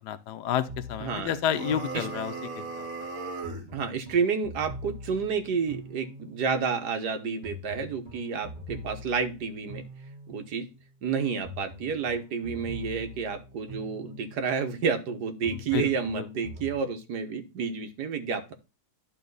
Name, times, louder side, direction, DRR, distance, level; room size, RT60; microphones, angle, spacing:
voice 1, 0.0-2.9 15.5-15.9 16.2-16.3, left 10 dB, 90° left, 1.3 m, -30 dB
sound 1, 0.7-2.6 3.4-6.5 7.4-10.5 11.4-14.5 15.4-16.8, left 1 dB, 30° right, 1.6 m, -43 dB
voice 2, 1.0-1.3 1.9-2.1 3.7-9.8 10.3-10.6 11.0-18.5, right 6 dB, 85° right, 1.7 m, -30 dB
sound 2, 1.5-3.7, right 4 dB, 55° right, 1.7 m, -37 dB
11.5 x 3.9 x 3.9 m
omnidirectional pair, 1.7 m